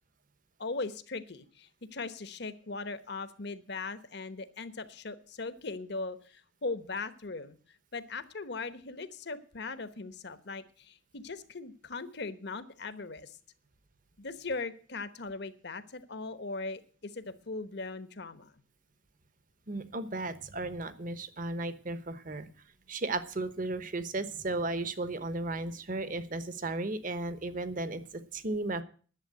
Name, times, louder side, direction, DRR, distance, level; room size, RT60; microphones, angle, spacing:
voice 1, 0.6-7.6 7.9-13.4 14.2-18.5, left 3 dB, 60° left, 12 dB, 1.1 m, -39 dB
voice 2, 19.7-22.5 22.9-28.8, right 2 dB, 45° right, 12 dB, 1.1 m, -35 dB
11.5 x 7.2 x 8.8 m, 0.41 s
head